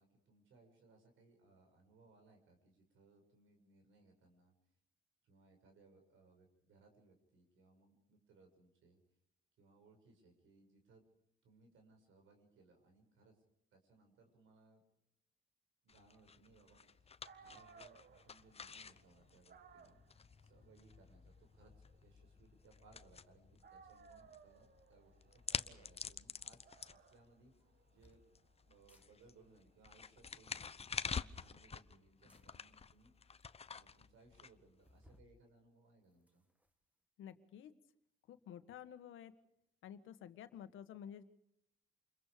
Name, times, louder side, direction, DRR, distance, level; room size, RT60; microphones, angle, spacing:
voice 1, 0.0-4.5 5.2-9.0 9.6-11.0 11.4-13.4 13.7-14.8 15.8-20.0 20.4-21.7 22.0-27.5 27.9-30.5 30.9-33.1 33.7-36.4, right 3 dB, 80° right, 3 dB, 6.7 m, -67 dB
sound 1, 15.9-35.1, left 5 dB, 30° left, 0.9 m, -49 dB
Dog, 16.9-17.0 17.2-23.3 23.6-30.4, right 6 dB, 50° right, 1.6 m, -64 dB
sound 2, 27.6-28.2 28.8-29.1 30.7-31.6 32.3-32.5 33.1-33.2 33.4-33.5 33.8-33.9 34.8-35.3 35.8-36.7, left 1 dB, 5° right, 2.3 m, -68 dB
voice 2, 37.2-37.7 38.3-39.3 39.8-41.2, left 9 dB, 85° left, 10 dB, 1.8 m, -51 dB
28.0 x 22.0 x 5.2 m, 0.78 s
cardioid pair, 90°, 20 cm